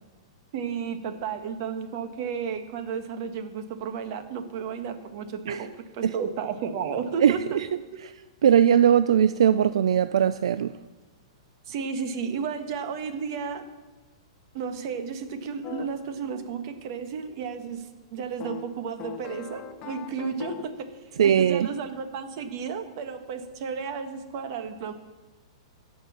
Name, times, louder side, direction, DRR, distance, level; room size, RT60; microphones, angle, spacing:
voice 1, 0.5-7.6 7.9-8.0 11.7-13.6 14.5-24.9, right 6 dB, 50° right, 1.3 m, -33 dB
voice 2, 7.2-7.7 8.4-10.8 21.2-21.7, right 9 dB, 80° right, 0.4 m, -20 dB
sound 1, 15.6-15.9 18.4-20.8, left 9 dB, 30° left, 0.9 m, -40 dB
15.5 x 5.5 x 7.2 m
hypercardioid pair, 150°, 3 cm